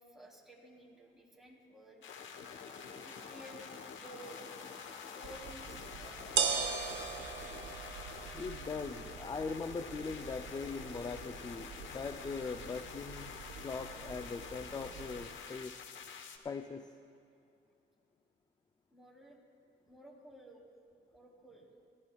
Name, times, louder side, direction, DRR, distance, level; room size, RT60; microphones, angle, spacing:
voice 1, 0.0-2.0 3.0-4.5 5.0-7.6 18.9-19.4 19.9-20.6 21.1-21.7, right 1 dB, ahead, -3 dB, 3.1 m, -54 dB
sound 1, 2.0-16.4, left 6 dB, 75° left, 1.1 m, -47 dB
sound 2, 5.2-15.3, right 6 dB, 70° right, 1.0 m, -41 dB
voice 2, 8.3-15.8 16.4-16.9, left 4 dB, 20° left, 8 dB, 0.4 m, -41 dB
20.5 x 14.5 x 2.3 m, 2.6 s
cardioid pair, 90°, 20 cm